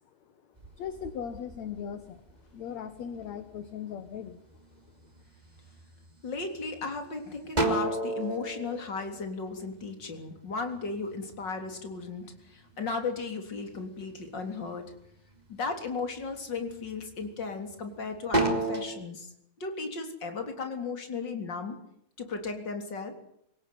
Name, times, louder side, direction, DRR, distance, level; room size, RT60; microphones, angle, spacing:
sound 1, 0.6-2.5 3.0-3.7 4.2-4.8 5.2-6.1 6.6-6.7 7.0-9.9 10.3-12.6 12.9-14.0 14.4-15.0 15.5-15.7 16.2-17.9 18.2-18.9, right 2 dB, 10° right, 3.0 m, -31 dB
voice 1, 0.7-4.4 4.7-4.8, left 8 dB, 55° left, 10 dB, 2.4 m, -39 dB
voice 2, 6.2-14.9 15.5-19.3 19.6-21.8 22.2-23.1, left 4 dB, 30° left, 6 dB, 3.8 m, -35 dB
26.0 x 17.5 x 9.5 m, 0.75 s
omnidirectional pair, 4.2 m